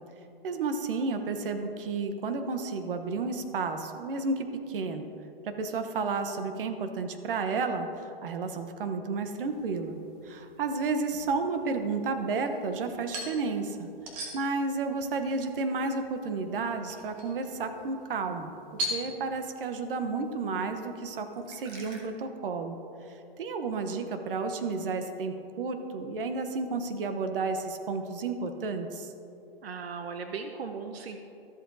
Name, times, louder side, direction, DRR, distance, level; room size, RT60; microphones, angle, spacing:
voice 1, 0.4-5.1 5.4-7.9 8.2-10.0 10.2-13.9 14.3-18.6 18.9-22.8 23.4-29.1, right 4 dB, 65° right, 7 dB, 1.0 m, -32 dB
sound 1, 9.4-22.0, equal, 35° right, 1.5 m, -43 dB
voice 2, 29.6-31.2, right 5 dB, 85° right, 6 dB, 0.8 m, -37 dB
13.5 x 7.7 x 2.7 m, 2.7 s
hypercardioid pair, 150°, 30 cm